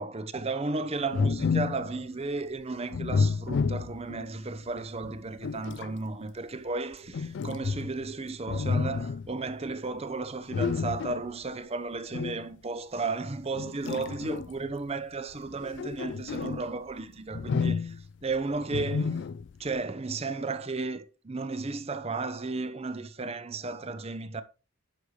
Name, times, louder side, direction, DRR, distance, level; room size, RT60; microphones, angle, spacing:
voice 1, 0.0-19.2 19.6-24.4, right 3 dB, 30° right, 0.7 m, -34 dB
sound 1, 1.1-1.9 2.9-4.3 5.0-6.0 7.1-8.1 8.5-9.3 10.5-11.3 12.1-12.5 13.6-14.7 15.5-16.7 17.3-18.1 18.7-19.6, left 5 dB, 55° left, 0.3 m, -30 dB
10.5 x 6.4 x 3.2 m
head